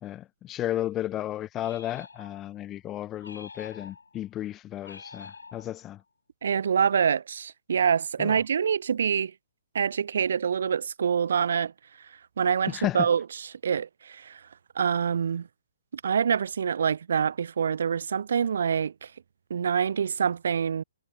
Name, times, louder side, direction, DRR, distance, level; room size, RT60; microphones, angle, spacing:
voice 1, 0.0-6.0 8.2-8.4 12.7-13.1, left 13 dB, 20° left, 0.8 m, -33 dB
sound 1, 1.6-2.6 3.2-4.3 4.8-6.0, left 4 dB, 80° left, 1.9 m, -47 dB
voice 2, 6.4-9.3 9.7-11.7 12.4-13.2 13.6-14.4 14.7-15.5 15.9-19.1 19.5-20.8, right 7 dB, 65° right, 1.2 m, -26 dB
figure-of-eight pair, 135°, 0 cm